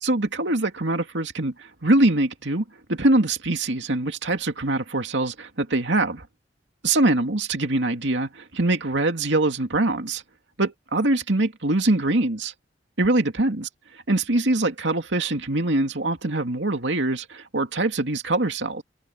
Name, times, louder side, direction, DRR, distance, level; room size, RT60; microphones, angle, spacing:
voice 1, 0.0-6.3 6.8-10.2 10.6-12.5 13.0-13.7 14.1-18.8, right 2 dB, 80° right, 2.4 m, -23 dB
head